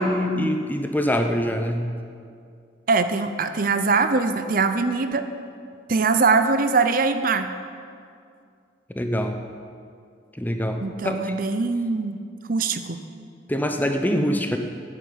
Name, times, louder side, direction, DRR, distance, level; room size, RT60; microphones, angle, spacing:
voice 1, 0.0-1.9 8.9-9.4 10.3-11.3 13.5-14.6, equal, 10° left, 5 dB, 0.8 m, -24 dB
voice 2, 2.9-5.3 5.9-7.5 10.8-12.2 12.5-13.0, right 4 dB, 50° right, 9 dB, 0.6 m, -22 dB
10.5 x 8.4 x 8.6 m, 2.3 s
head